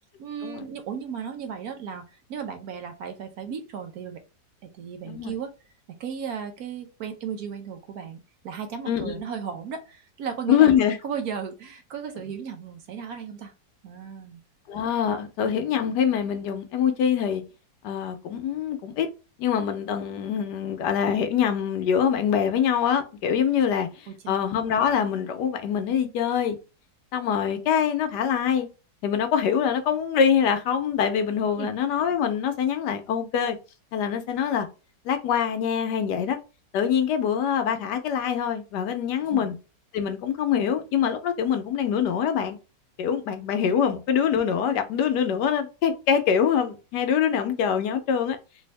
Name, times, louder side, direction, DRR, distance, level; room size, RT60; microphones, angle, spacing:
voice 1, 0.2-4.2 4.7-5.5 6.0-10.7 11.0-13.5 13.8-14.4 24.1-24.4 31.5-31.7 39.2-39.5, right 7 dB, 65° right, 1.0 m, -35 dB
voice 2, 8.9-9.2 10.5-11.0 14.7-17.4 17.8-19.1 19.4-26.6 27.1-28.7 29.0-33.6 33.9-34.7 35.0-36.4 36.7-39.6 39.9-42.6 43.0-48.4, left 8 dB, 75° left, 1.2 m, -24 dB
3.4 x 2.6 x 3.2 m
omnidirectional pair, 1.9 m